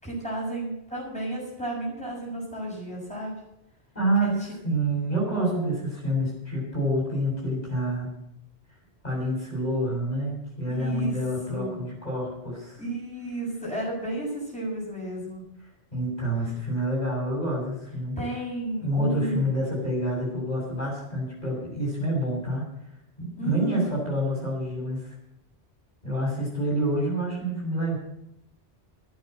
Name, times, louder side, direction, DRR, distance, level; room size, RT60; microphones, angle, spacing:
voice 1, 0.0-3.3 4.2-4.3 5.1-5.7 10.7-11.1 11.5-11.8 12.8-15.4 18.2-19.5 23.3-23.9, right 1 dB, 5° left, -5 dB, 6.5 m, -32 dB
voice 2, 4.0-4.3 4.6-8.1 9.0-12.8 15.9-18.1 18.8-22.6 23.2-25.2 26.0-28.0, right 1 dB, 40° left, -4 dB, 6.9 m, -28 dB
14.0 x 9.8 x 7.8 m, 0.82 s
omnidirectional pair, 1.1 m